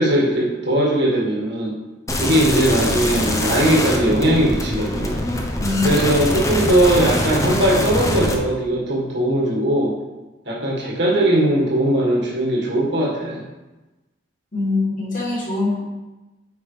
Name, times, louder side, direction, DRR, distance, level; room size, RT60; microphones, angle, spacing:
voice 1, 0.0-1.8 2.2-5.2 5.8-9.9 10.4-13.4, right 1 dB, 60° right, -3 dB, 1.8 m, -19 dB
sound 1, 2.1-8.3, left 1 dB, 15° left, 0.7 m, -23 dB
voice 2, 5.6-6.4 14.5-15.8, left 3 dB, 40° left, -7 dB, 2.6 m, -23 dB
8.7 x 5.4 x 3.4 m, 1.1 s
head